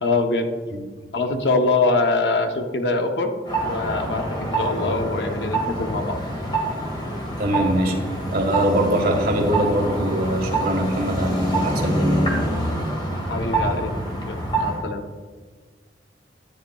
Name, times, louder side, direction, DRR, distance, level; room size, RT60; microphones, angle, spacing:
voice 1, 0.0-0.5 1.1-3.3 3.6-6.2 13.3-13.9 14.3-15.0, left 3 dB, 70° left, 5 dB, 0.7 m, -23 dB
sound 1, 3.5-14.8, right 1 dB, 25° left, 1.2 m, -26 dB
voice 2, 7.4-8.0 8.3-12.3, right 1 dB, 55° right, 0 dB, 1.4 m, -22 dB
10.0 x 9.0 x 2.3 m, 1.5 s
head